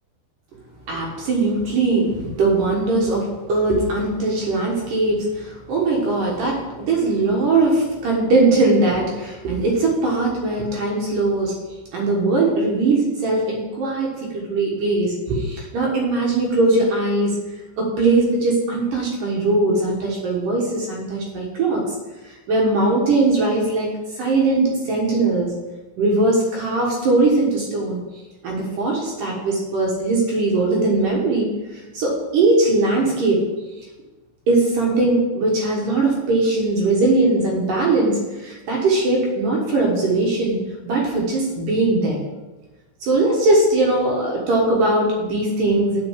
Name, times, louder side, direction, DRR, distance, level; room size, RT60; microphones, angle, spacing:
voice 1, 0.9-11.5 11.9-17.4 17.8-21.8 22.5-23.9 24.2-25.5 26.0-28.0 28.4-31.5 31.9-33.4 34.5-40.6 40.8-42.2 43.0-46.0, right 2 dB, 60° right, -2 dB, 2.6 m, -20 dB
7.8 x 5.2 x 7.3 m, 1.2 s
omnidirectional pair, 4.9 m